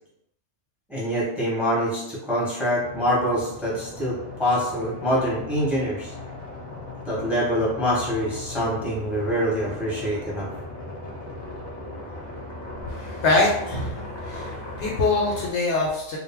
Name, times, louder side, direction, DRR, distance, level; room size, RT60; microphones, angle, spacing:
voice 1, 0.9-6.1 7.1-10.5, equal, ahead, -6 dB, 0.7 m, -25 dB
sound 1, 2.8-15.5, left 2 dB, 30° left, 0.5 m, -37 dB
voice 2, 12.9-14.0 14.3-16.2, left 3 dB, 70° left, -2 dB, 0.8 m, -24 dB
2.5 x 2.1 x 3.3 m, 0.82 s
omnidirectional pair, 1.3 m